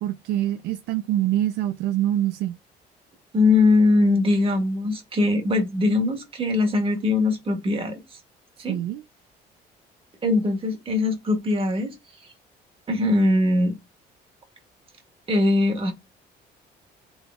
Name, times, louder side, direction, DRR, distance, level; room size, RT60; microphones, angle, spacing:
voice 1, 0.0-2.6 8.7-9.0, right 12 dB, 80° right, 0.4 m, -25 dB
voice 2, 3.3-8.0 8.6-8.8 10.2-11.9 12.9-13.8 15.3-15.9, left 2 dB, 35° right, 1.8 m, -21 dB
3.8 x 3.3 x 3.6 m
cardioid pair, 110°, 17 cm